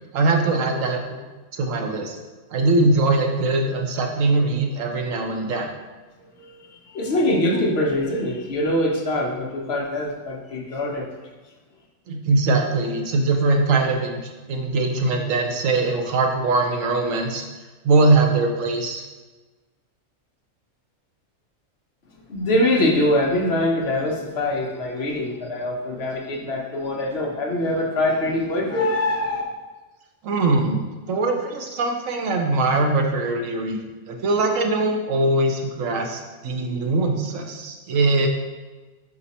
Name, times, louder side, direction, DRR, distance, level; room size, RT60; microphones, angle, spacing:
voice 1, 0.1-1.2 1.6-2.2 2.5-5.7 12.1-14.2 14.5-17.4 17.8-19.0 30.2-33.8 34.1-38.3, right 2 dB, 75° right, 3 dB, 1.2 m, -21 dB
voice 2, 6.2-11.1 22.3-29.4, left 1 dB, 55° left, 1 dB, 1.0 m, -23 dB
5.0 x 4.7 x 4.1 m, 1.2 s
omnidirectional pair, 1.4 m